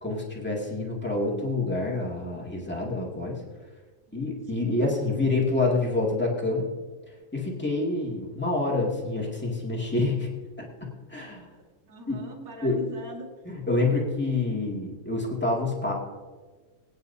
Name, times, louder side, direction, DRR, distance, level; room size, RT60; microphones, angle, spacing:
voice 1, 0.0-3.4 4.1-6.7 7.3-10.3 10.6-11.5 12.1-12.3 12.6-12.8 13.4-15.9, left 2 dB, 5° left, -3 dB, 1.0 m, -27 dB
voice 2, 4.1-4.8 11.5-13.3, right 2 dB, 30° right, -3 dB, 2.0 m, -43 dB
23.0 x 9.4 x 2.8 m, 1.4 s
omnidirectional pair, 4.2 m